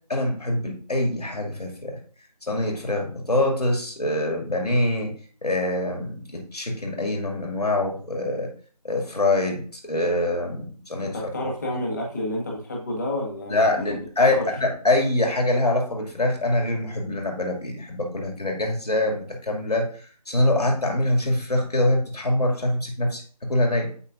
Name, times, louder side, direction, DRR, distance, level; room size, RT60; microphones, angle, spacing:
voice 1, 0.1-2.0 2.5-5.1 5.4-8.5 8.8-11.1 13.5-23.9, left 1 dB, 70° left, 2 dB, 2.2 m, -24 dB
voice 2, 11.0-14.0 14.3-14.5, left 1 dB, 25° left, -1 dB, 1.6 m, -30 dB
7.8 x 5.6 x 2.5 m, 0.43 s
figure-of-eight pair, 165°, 21 cm